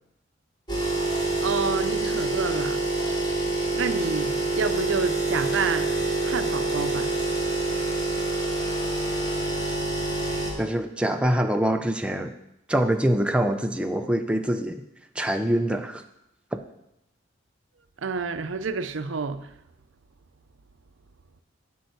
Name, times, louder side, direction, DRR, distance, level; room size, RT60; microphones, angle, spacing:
sound 1, 0.7-10.5, right 2 dB, 20° left, 2.5 m, -26 dB
voice 1, 1.4-2.8 3.7-7.1 18.0-19.5, right 4 dB, 75° right, 0.6 m, -29 dB
voice 2, 10.6-12.3 12.7-14.8 15.2-16.0 16.5-16.6, right 1 dB, 5° right, 0.5 m, -24 dB
8.3 x 5.6 x 7.9 m
head